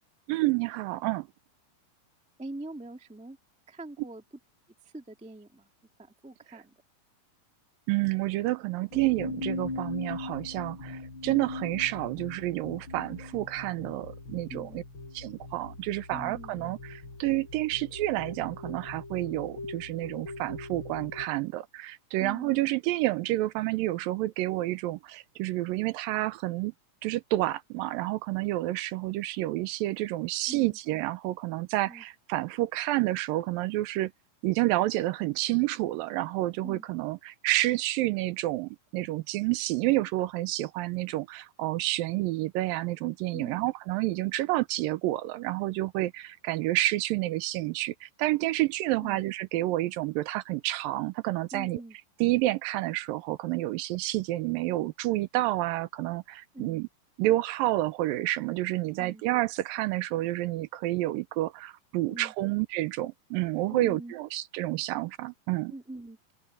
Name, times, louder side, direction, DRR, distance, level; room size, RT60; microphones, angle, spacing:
voice 1, 0.3-1.3 7.9-14.8 15.1-26.7 27.0-34.1 34.4-51.8 52.2-56.9 57.2-65.7, right 17 dB, 85° right, 2.3 m, -29 dB
voice 2, 2.4-3.4 3.7-4.2 4.9-5.7 6.0-6.7 14.5-14.8 16.1-16.6 22.2-22.7 30.5-30.8 31.9-32.0 36.6-36.8 43.3-43.6 49.0-49.2 51.5-52.0 56.5-56.8 59.0-59.2 62.1-62.3 63.7-64.1 65.7-66.2, right 2 dB, 5° right, 0.6 m, -43 dB
sound 1, 8.9-21.3, left 3 dB, 35° left, 6.2 m, -40 dB
omnidirectional pair, 4.2 m